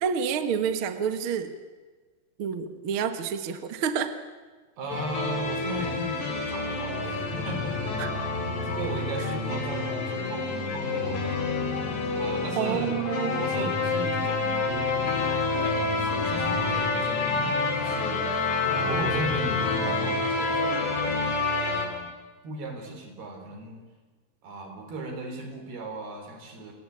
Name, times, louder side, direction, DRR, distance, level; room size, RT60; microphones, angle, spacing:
voice 1, 0.0-1.5 2.4-4.1 8.0-8.1 12.5-13.7, right 7 dB, 55° right, 9 dB, 1.5 m, -29 dB
voice 2, 4.8-7.8 8.2-8.4 8.6-11.7 12.2-14.7 15.2-18.3 18.7-21.2 21.6-22.1 22.4-23.8 24.4-26.7, right 2 dB, 70° right, 4 dB, 6.0 m, -37 dB
sound 1, 4.9-21.9, left 3 dB, 45° left, 4.8 m, -28 dB
sound 2, 5.8-21.4, left 10 dB, 65° left, 1.8 m, -36 dB
28.5 x 21.0 x 8.8 m, 1.4 s
omnidirectional pair, 4.7 m